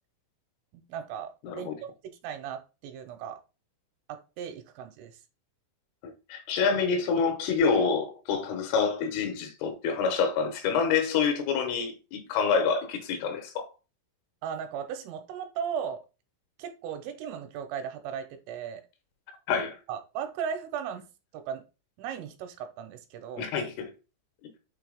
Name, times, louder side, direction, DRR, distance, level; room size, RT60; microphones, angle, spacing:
voice 1, 0.7-3.4 4.1-5.1 14.4-16.0 16.6-18.8 19.9-21.1 21.3-21.6 22.0-23.5, right 8 dB, 80° right, 3.3 m, -37 dB
voice 2, 1.4-1.8 6.0-13.7 19.5-19.8 23.4-23.9 24.4-24.5, left 5 dB, 75° left, 3.5 m, -27 dB
7.6 x 2.9 x 4.9 m
omnidirectional pair, 6.0 m